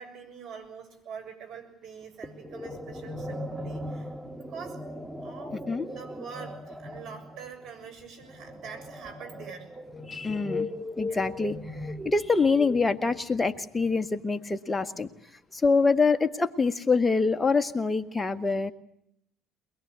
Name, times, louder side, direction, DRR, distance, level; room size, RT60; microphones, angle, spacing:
voice 1, 0.0-4.1 4.4-4.8 5.2-5.6 5.9-9.7 11.1-11.2, right 6 dB, 65° right, 6 dB, 7.2 m, -44 dB
sound 1, 2.2-13.6, left 1 dB, 5° right, 2.6 m, -38 dB
voice 2, 5.5-5.9 10.1-10.7 11.0-11.6 12.1-15.1 15.5-18.7, left 4 dB, 20° left, 8 dB, 1.8 m, -25 dB
22.5 x 21.5 x 8.3 m, 0.73 s
hypercardioid pair, 65°, 0 cm